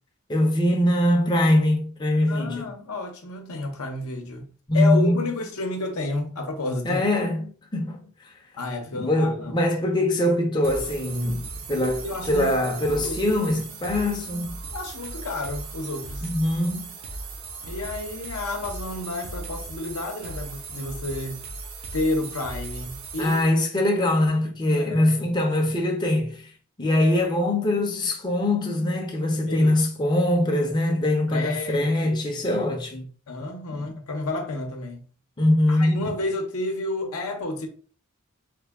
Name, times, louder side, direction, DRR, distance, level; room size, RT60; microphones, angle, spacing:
voice 1, 0.3-2.6 4.7-5.2 6.8-8.0 8.9-14.6 16.2-16.9 23.2-26.4 26.8-33.1 33.7-33.9 35.4-36.0, left 1 dB, 20° left, 0.6 m, -22 dB
voice 2, 2.3-7.0 8.6-9.6 11.7-12.5 12.9-13.2 14.7-16.3 17.6-21.4 21.9-23.4 24.7-25.1 29.5-29.8 31.3-32.2 32.5-32.7 33.3-35.1 35.7-37.7, left 2 dB, 75° left, 0.8 m, -31 dB
sound 1, 10.6-23.4, right 3 dB, 70° right, 0.7 m, -37 dB
3.3 x 2.2 x 3.4 m
head